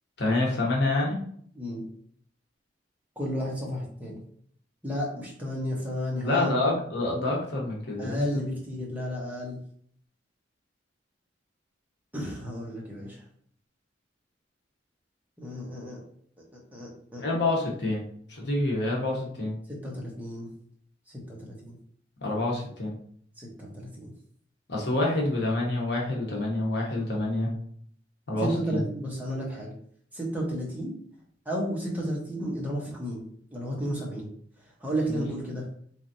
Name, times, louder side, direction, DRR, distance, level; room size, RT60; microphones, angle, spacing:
voice 1, 0.2-1.2 6.2-8.4 17.2-18.0 18.3-19.5 22.2-23.0 24.7-27.5 28.3-28.8, left 2 dB, 60° left, -1 dB, 1.0 m, -27 dB
voice 2, 3.2-4.2 4.8-6.6 8.0-9.6 12.1-13.2 15.4-16.0 16.5-17.2 19.7-20.5 21.1-21.8 23.4-24.1 28.4-29.7 30.1-30.9 31.4-33.2 33.5-34.3 34.8-35.7, equal, 10° right, -4 dB, 0.9 m, -33 dB
3.9 x 3.3 x 2.7 m, 0.62 s
head